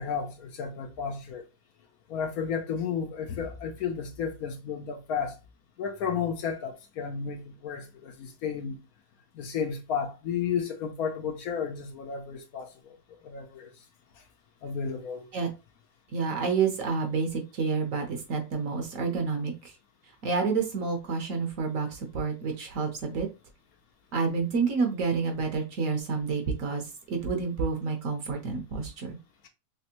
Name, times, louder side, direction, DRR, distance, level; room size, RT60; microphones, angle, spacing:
voice 1, 0.0-1.4 2.1-5.4 5.8-8.8 9.3-12.9 13.2-13.7 14.2-14.3 14.6-15.3, left 6 dB, 70° left, 1.0 m, -33 dB
voice 2, 16.1-19.7 20.2-23.3 24.1-29.2, right 5 dB, 60° right, 1.1 m, -29 dB
3.4 x 3.0 x 2.9 m
omnidirectional pair, 1.8 m